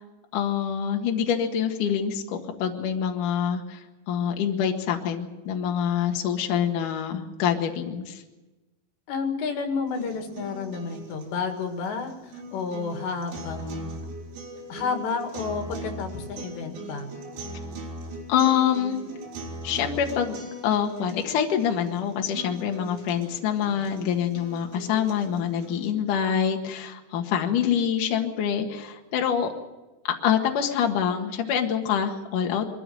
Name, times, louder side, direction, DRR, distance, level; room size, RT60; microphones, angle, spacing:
voice 1, 0.3-8.2 18.3-19.0 19.6-29.5 30.0-32.7, left 8 dB, 55° left, 3 dB, 2.8 m, -26 dB
voice 2, 9.1-13.9 14.7-17.1, left 5 dB, 80° left, 5 dB, 4.1 m, -31 dB
sound 1, 9.9-25.9, right 2 dB, 85° right, 6.0 m, -40 dB
23.5 x 14.0 x 9.3 m, 1.1 s
omnidirectional pair, 4.9 m